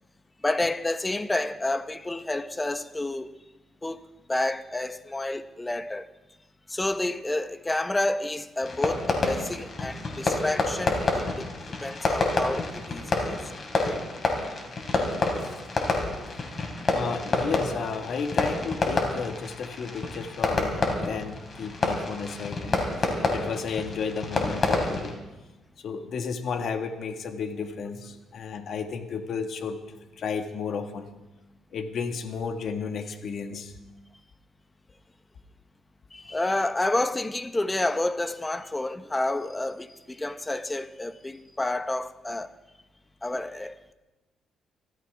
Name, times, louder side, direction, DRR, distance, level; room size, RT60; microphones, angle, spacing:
voice 1, 0.4-3.3 3.8-6.1 6.7-11.5 11.8-13.4 13.8-14.0 36.1-42.5 43.2-43.9, left 2 dB, 15° left, 0.9 m, -29 dB
Fireworks, 8.6-25.1, left 3 dB, 45° left, 4.2 m, -28 dB
voice 2, 15.3-15.6 16.9-25.2 25.8-29.8 30.2-31.1 31.7-33.7, left 5 dB, 65° left, 1.6 m, -33 dB
25.0 x 15.0 x 3.5 m
cardioid pair, 90°, 0 cm